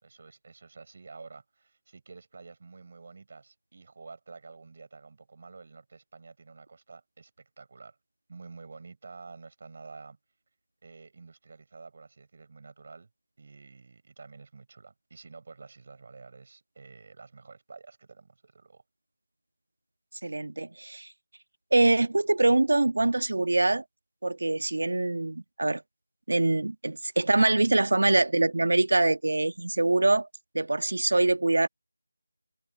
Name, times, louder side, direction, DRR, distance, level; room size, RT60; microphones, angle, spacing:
voice 1, 0.0-8.0 8.3-10.2 10.8-13.1 13.4-18.8, right 4 dB, 45° right, 6.1 m, -49 dB
voice 2, 20.2-21.1 21.7-23.8 24.2-25.8 26.3-30.3 30.5-31.7, right 2 dB, 70° right, 1.6 m, -24 dB
figure-of-eight pair, 165°, 0 cm